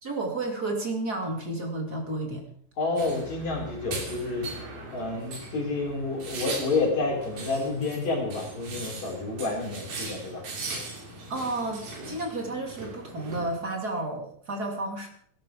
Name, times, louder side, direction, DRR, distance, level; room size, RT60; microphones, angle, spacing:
voice 1, 0.0-2.4 11.3-15.1, right 2 dB, 35° right, 3 dB, 2.9 m, -31 dB
voice 2, 2.8-4.5 4.9-10.4, left 3 dB, 70° left, -2 dB, 5.3 m, -29 dB
sound 1, 3.0-13.5, right 3 dB, 75° right, 4.4 m, -39 dB
17.5 x 12.0 x 5.1 m, 0.63 s
omnidirectional pair, 3.3 m